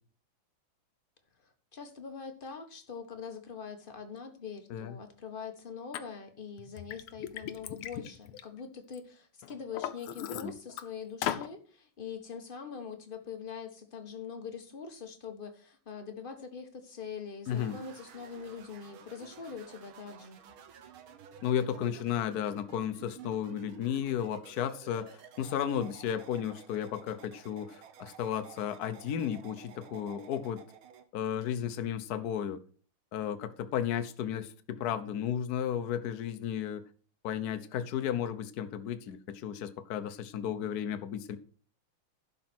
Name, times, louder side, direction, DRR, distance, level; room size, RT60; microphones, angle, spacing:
voice 1, 1.4-20.4, left 6 dB, 30° left, 1.2 m, -43 dB
Liquid, 5.9-6.0 6.6-9.0 9.4-10.8 11.2-11.5, left 11 dB, 90° left, 1.7 m, -37 dB
voice 2, 17.5-17.8 21.4-30.6 31.1-32.6 33.1-36.8 37.2-41.4, left 9 dB, 55° left, 1.2 m, -34 dB
sound 1, 17.5-31.1, right 7 dB, 75° right, 1.9 m, -53 dB
11.5 x 5.3 x 6.1 m
omnidirectional pair, 2.4 m